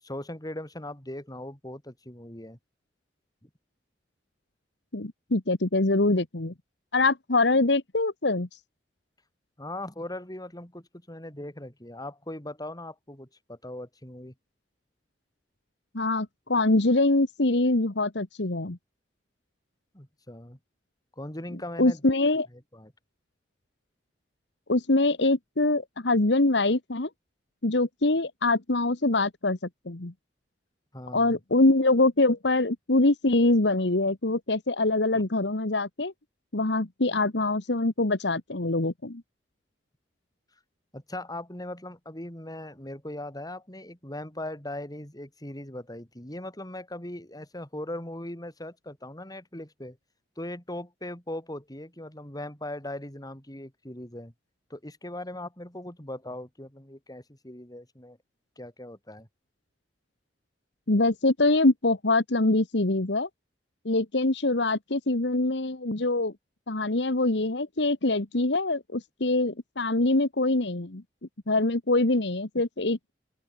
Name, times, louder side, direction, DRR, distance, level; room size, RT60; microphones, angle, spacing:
voice 1, 0.0-2.6 3.4-3.5 9.6-14.3 19.9-20.6 21.2-22.0 22.5-22.9 30.9-31.4 35.1-35.2 40.9-50.0 50.4-54.3 54.7-58.2 58.6-59.3, left 1 dB, 20° left, 5.9 m, -39 dB
voice 2, 4.9-6.5 6.9-8.5 15.9-18.8 21.8-22.5 24.7-27.1 27.6-29.6 29.8-30.1 31.1-36.1 36.5-39.2 60.9-63.3 63.8-66.3 66.7-71.0 71.5-73.1, left 2 dB, 70° left, 1.6 m, -24 dB
open air
head